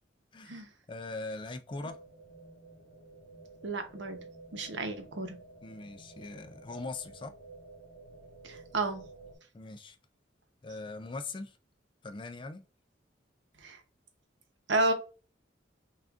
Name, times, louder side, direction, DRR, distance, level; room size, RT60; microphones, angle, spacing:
voice 1, 0.3-2.0 5.6-7.3 9.5-10.0 10.6-11.6 12.0-12.6, left 3 dB, 25° left, 0.3 m, -41 dB
sound 1, 1.7-9.4, right 3 dB, 55° left, 1.5 m, -52 dB
voice 2, 3.6-4.3 4.5-5.4 8.4-9.0 13.6-13.8 14.7-14.9, right 2 dB, 70° right, 0.8 m, -31 dB
5.9 x 2.4 x 2.4 m
head